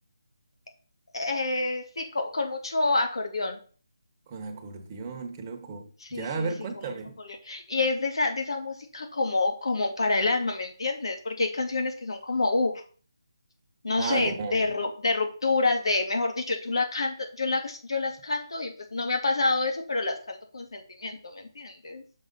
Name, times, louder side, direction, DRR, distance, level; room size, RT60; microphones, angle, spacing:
voice 1, 1.1-3.6 6.0-6.9 7.2-12.7 13.8-22.0, left 3 dB, 80° left, 2.3 m, -28 dB
voice 2, 4.3-7.1 13.9-14.6, right 4 dB, 20° right, 1.0 m, -34 dB
6.5 x 5.9 x 4.0 m
hypercardioid pair, 170°, 3 cm